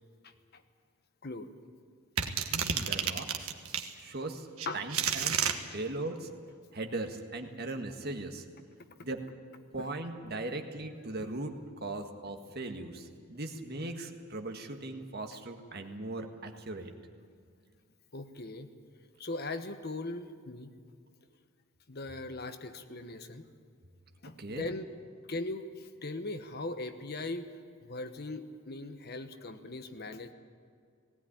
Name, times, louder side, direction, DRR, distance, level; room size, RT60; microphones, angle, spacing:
voice 1, 0.2-0.6 1.2-1.5 2.3-2.4 4.7-4.8 9.8-9.9 11.2-11.3 18.1-18.7 19.2-20.7 21.9-23.5 24.2-24.8 25.3-27.5 27.8-30.3, left 2 dB, 50° left, 9 dB, 1.1 m, -39 dB
sound 1, 2.2-3.9 4.6-5.6, right 8 dB, 80° right, 1.4 m, -30 dB
voice 2, 2.5-3.5 4.0-4.5 4.7-5.5 5.7-6.3 6.7-8.4 9.0-9.2 9.7-11.5 11.8-16.9 24.4-24.7, right 2 dB, 45° right, 5 dB, 1.7 m, -38 dB
18.5 x 17.0 x 10.0 m, 2.2 s
head